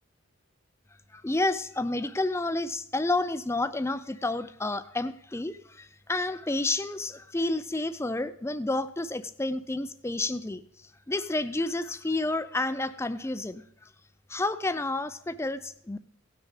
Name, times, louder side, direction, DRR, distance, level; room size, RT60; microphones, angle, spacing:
voice 1, 1.1-10.6 11.1-13.6 14.3-16.0, left 2 dB, 10° left, 12 dB, 0.4 m, -30 dB
17.0 x 6.3 x 5.1 m, 0.66 s
head